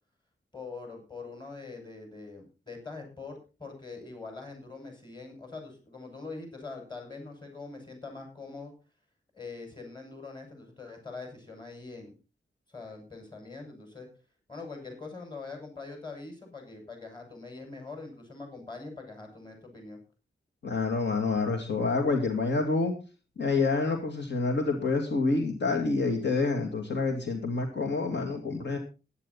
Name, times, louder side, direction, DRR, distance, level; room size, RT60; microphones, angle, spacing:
voice 1, 0.5-8.7 9.3-12.1 12.7-14.1 14.5-20.0, left 3 dB, 25° left, 3 dB, 6.7 m, -43 dB
voice 2, 20.6-22.9 23.4-28.8, left 3 dB, 70° left, 4 dB, 2.6 m, -27 dB
15.5 x 11.5 x 4.1 m, 0.33 s
wide cardioid pair, 145°, 19 cm